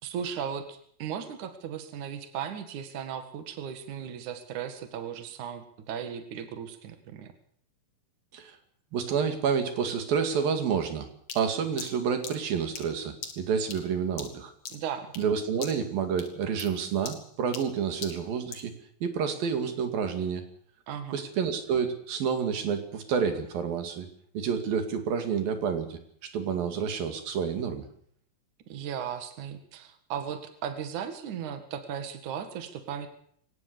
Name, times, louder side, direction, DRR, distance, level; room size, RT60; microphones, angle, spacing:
voice 1, 0.0-7.3 14.7-15.1 20.9-21.2 28.7-33.1, right 8 dB, 60° right, 8 dB, 3.2 m, -36 dB
voice 2, 8.9-11.1 11.4-14.5 15.2-18.7 19.0-20.4 21.1-24.1 24.3-26.0 26.3-27.9, right 6 dB, 85° right, 7 dB, 4.2 m, -29 dB
sound 1, 11.3-15.3 15.6-15.9 16.2-18.7, left 5 dB, 45° left, 3.2 m, -42 dB
23.5 x 18.5 x 6.9 m, 0.62 s
omnidirectional pair, 4.0 m